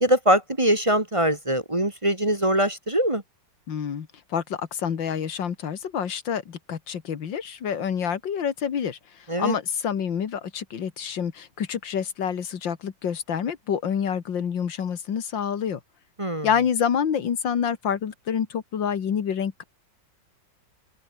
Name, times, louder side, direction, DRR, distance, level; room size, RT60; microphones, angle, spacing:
voice 1, 0.0-3.2 9.3-9.6 16.2-16.5, right 1 dB, 15° right, 1.8 m, -22 dB
voice 2, 3.7-9.0 9.4-15.8 16.4-19.6, left 8 dB, 90° left, 2.4 m, -27 dB
open air
omnidirectional pair, 2.0 m